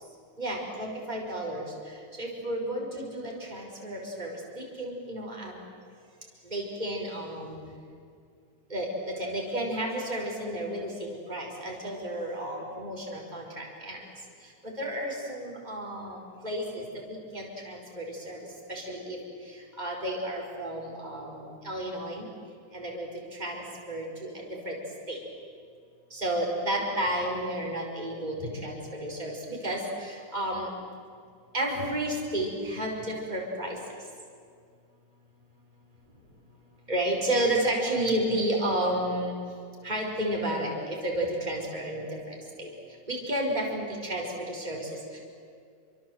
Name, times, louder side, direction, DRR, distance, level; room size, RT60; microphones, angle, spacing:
voice 1, 0.4-1.6 2.2-5.6 6.4-7.6 8.7-14.0 14.6-16.2 16.4-18.4 18.7-19.2 19.8-22.2 22.7-23.1 23.4-24.8 25.1-25.2 26.1-30.7 31.5-33.8 36.9-39.3 39.8-42.7 43.1-45.2, right 1 dB, 20° right, -1 dB, 5.0 m, -32 dB
28.5 x 25.0 x 8.0 m, 2.3 s
omnidirectional pair, 2.3 m